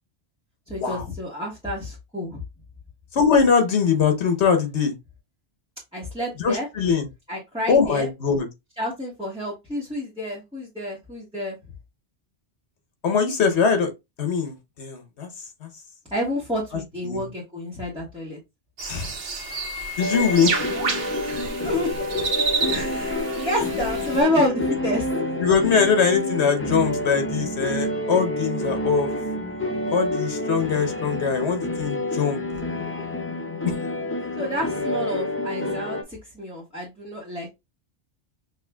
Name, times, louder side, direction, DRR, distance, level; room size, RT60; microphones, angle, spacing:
voice 1, 0.7-2.4 5.9-6.7 7.3-8.1 8.8-11.6 16.1-18.4 21.3-22.3 22.7-23.1 23.4-25.1 34.4-37.5, left 1 dB, 5° right, 1.1 m, -29 dB
voice 2, 3.1-4.9 6.4-7.1 7.7-8.5 13.0-13.9 14.2-15.3 15.6-15.7 17.0-17.2 18.9-19.1 20.0-20.5 25.4-29.1 29.9-32.4 33.6-33.7, left 6 dB, 70° left, 1.2 m, -22 dB
sound 1, 18.8-24.2, right 3 dB, 80° right, 1.3 m, -29 dB
sound 2, 20.0-36.0, left 1 dB, 15° left, 0.4 m, -28 dB
6.2 x 2.5 x 2.3 m
omnidirectional pair, 1.2 m